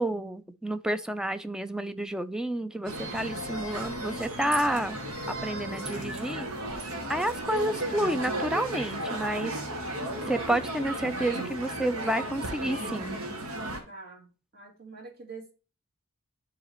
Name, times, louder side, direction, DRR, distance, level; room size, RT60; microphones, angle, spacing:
voice 1, 0.0-5.0 5.4-6.5 7.1-9.6 10.3-13.2, right 1 dB, 5° right, 0.4 m, -30 dB
sound 1, 2.9-13.8, right 1 dB, 75° right, 1.8 m, -34 dB
voice 2, 13.9-15.5, right 4 dB, 45° right, 2.5 m, -45 dB
10.5 x 4.0 x 3.0 m
head